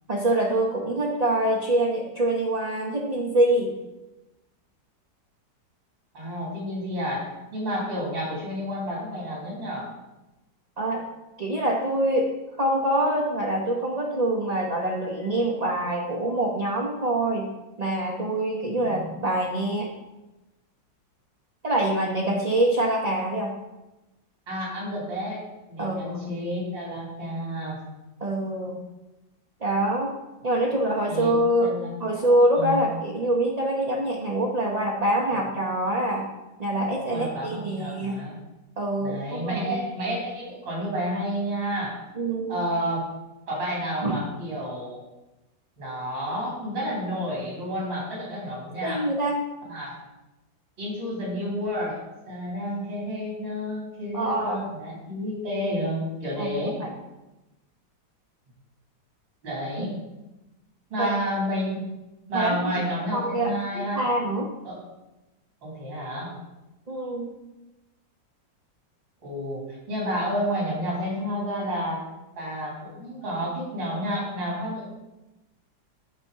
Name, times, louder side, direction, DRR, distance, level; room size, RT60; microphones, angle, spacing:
voice 1, 0.1-3.7 10.8-11.0 11.4-12.3 12.6-17.5 17.8-19.9 21.6-23.5 25.8-26.3 28.2-28.8 29.6-30.1 30.4-31.7 32.0-36.3 36.6-38.2 38.8-39.8 42.2-42.6 44.0-44.2 48.8-49.4 54.1-54.7 56.4-56.5 56.8-56.9 59.8-59.9 61.0-61.1 62.3-62.7 63.1-64.5 66.9-67.3, right 1 dB, 35° right, -1 dB, 0.6 m, -25 dB
voice 2, 6.1-9.9 18.8-19.2 24.5-25.4 25.7-27.8 31.1-31.3 31.6-32.2 32.5-32.8 35.3-35.4 37.1-38.4 39.0-42.0 42.5-43.0 43.5-45.0 45.8-49.1 49.7-50.0 50.8-56.8 59.4-60.0 60.9-61.9 62.3-64.1 64.6-64.8 65.6-66.3 69.2-72.0 72.4-74.9, equal, 90° right, -4 dB, 3.9 m, -30 dB
8.1 x 4.3 x 6.7 m, 1.0 s
omnidirectional pair, 2.0 m